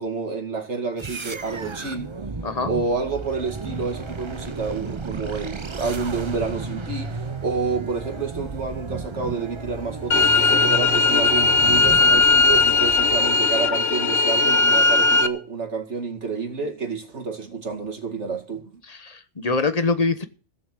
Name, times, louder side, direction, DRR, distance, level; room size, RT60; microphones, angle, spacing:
voice 1, 0.0-2.1 2.7-18.6, right 4 dB, 65° right, 2.5 m, -29 dB
sound 1, 1.0-13.6, right 4 dB, 30° right, 0.7 m, -33 dB
sound 2, 10.1-15.3, left 3 dB, 55° left, 1.1 m, -18 dB
voice 2, 18.9-20.3, left 3 dB, 35° left, 1.1 m, -24 dB
16.0 x 7.1 x 7.6 m
omnidirectional pair, 1.3 m